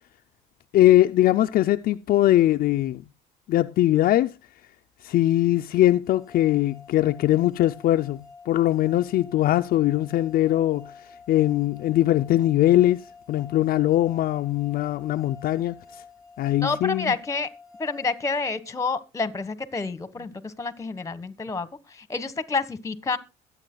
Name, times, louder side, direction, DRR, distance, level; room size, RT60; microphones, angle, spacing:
voice 1, 0.7-3.0 3.5-4.3 5.0-10.9 11.3-15.8 16.4-17.1, left 14 dB, 60° left, 0.4 m, -21 dB
sound 1, 6.1-19.0, left 4 dB, 5° right, 2.2 m, -49 dB
voice 2, 16.6-17.5 17.8-23.2, left 4 dB, 20° left, 1.3 m, -29 dB
22.0 x 8.3 x 2.3 m
cardioid pair, 110°, 17 cm